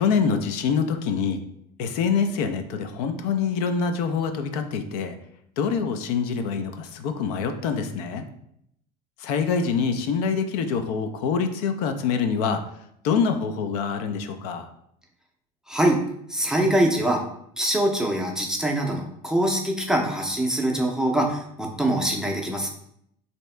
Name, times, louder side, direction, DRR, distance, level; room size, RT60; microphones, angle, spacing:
voice 1, 0.0-1.4 1.8-5.2 5.6-8.3 9.2-12.6 13.0-14.7, left 6 dB, 80° left, 7 dB, 0.5 m, -25 dB
voice 2, 15.7-17.2 17.6-22.7, right 1 dB, 5° right, 0 dB, 0.5 m, -24 dB
3.3 x 2.8 x 3.1 m, 0.73 s
supercardioid pair, 130°, 20 cm